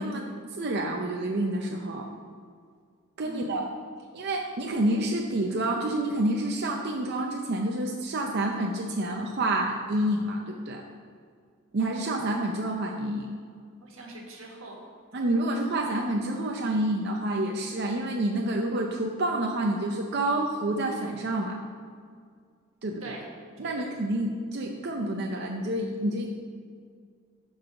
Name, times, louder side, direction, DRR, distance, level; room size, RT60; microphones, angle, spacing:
voice 1, 0.0-2.1 3.2-3.7 4.1-10.8 11.7-13.3 15.1-21.6 22.8-23.2 23.6-26.3, right 1 dB, 55° right, 1 dB, 0.6 m, -28 dB
voice 2, 3.2-3.8 13.8-14.8 23.0-23.2 23.6-23.9, right 2 dB, 90° right, 0 dB, 1.5 m, -42 dB
11.0 x 4.0 x 4.8 m, 2.1 s
head